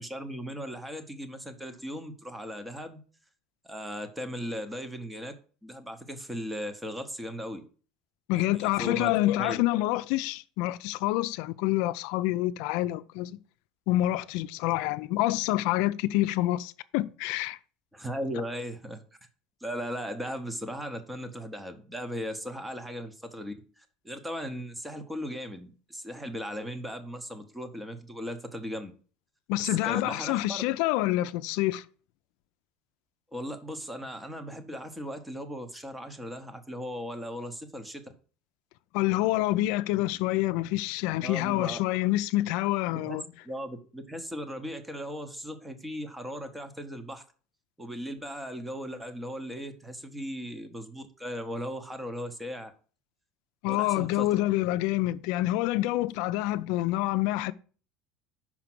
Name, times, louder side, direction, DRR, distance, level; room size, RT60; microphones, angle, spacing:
voice 1, 0.0-3.0 3.6-5.4 5.6-7.6 8.3-9.1 9.4-9.6 17.9-19.0 19.6-28.9 29.6-30.6 33.3-38.0 41.2-41.8 42.9-43.2 43.4-47.2 47.8-52.7 53.7-54.3, equal, 5° right, 0.8 m, -37 dB
voice 2, 8.3-13.4 13.9-17.6 29.5-31.8 38.9-43.2 53.6-57.5, left 16 dB, 65° left, 0.4 m, -27 dB
5.9 x 5.0 x 6.0 m
cardioid pair, 160°, 0 cm